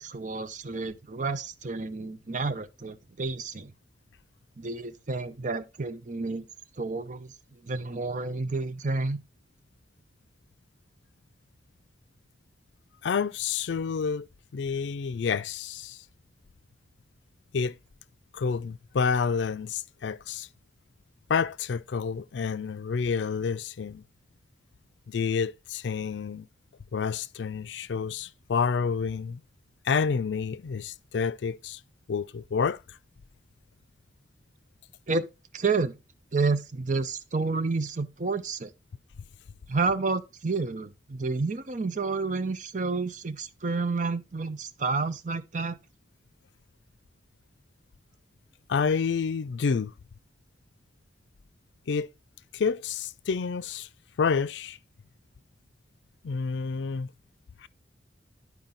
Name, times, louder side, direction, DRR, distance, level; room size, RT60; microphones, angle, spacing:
voice 1, 0.0-3.7 4.6-6.4 6.8-7.3 7.6-9.2 35.1-35.3 35.5-36.0 36.3-38.7 39.7-45.8, right 3 dB, 45° right, 0.7 m, -30 dB
voice 2, 13.0-14.3 14.5-16.0 17.5-17.8 18.3-20.5 21.3-24.0 25.1-26.5 26.9-29.4 29.8-31.8 32.1-33.0 48.7-49.9 51.9-52.1 52.5-53.9 54.2-54.8 56.2-57.1 57.6-57.7, left 5 dB, 85° left, 0.4 m, -29 dB
10.5 x 4.8 x 3.9 m
head